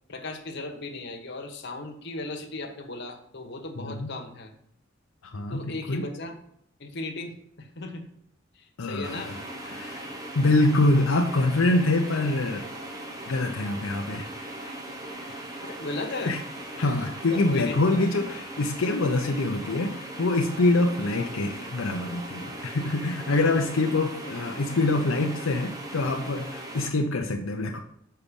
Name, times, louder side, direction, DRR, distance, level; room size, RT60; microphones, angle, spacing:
voice 1, 0.1-4.5 5.5-6.4 6.8-8.1 8.6-9.3 9.7-9.8 15.6-16.4 17.3-18.1 21.2-21.3, left 2 dB, 60° left, 3 dB, 1.3 m, -36 dB
voice 2, 3.8-4.1 5.2-6.0 8.8-9.4 9.7-10.0 10.3-12.7 13.3-14.8 16.3-16.4 16.8-27.8, left 2 dB, 90° left, 2 dB, 0.7 m, -25 dB
sound 1, 9.0-26.9, right 1 dB, 20° right, 1.1 m, -39 dB
7.2 x 5.6 x 5.3 m, 0.74 s
head